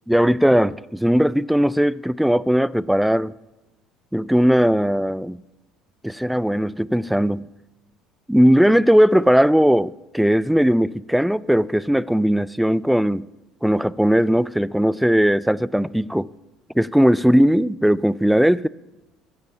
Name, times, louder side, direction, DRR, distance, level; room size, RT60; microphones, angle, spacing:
voice 1, 0.1-3.3 4.1-5.4 6.0-7.5 8.3-13.3 13.6-16.3 16.7-18.7, equal, ahead, 0.3 m, -18 dB
15.0 x 7.1 x 5.6 m
hypercardioid pair, 60°, 0 cm